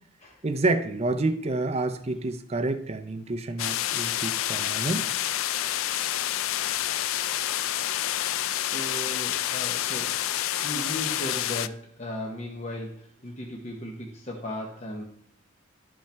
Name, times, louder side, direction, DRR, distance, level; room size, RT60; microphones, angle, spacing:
voice 1, 0.4-5.0, right 2 dB, 30° right, 8 dB, 0.6 m, -28 dB
sound 1, 3.6-11.7, left 12 dB, 85° left, 0.3 m, -28 dB
voice 2, 8.6-10.1 10.6-15.0, left 1 dB, 35° left, -1 dB, 1.0 m, -36 dB
11.5 x 5.5 x 3.4 m, 0.63 s
head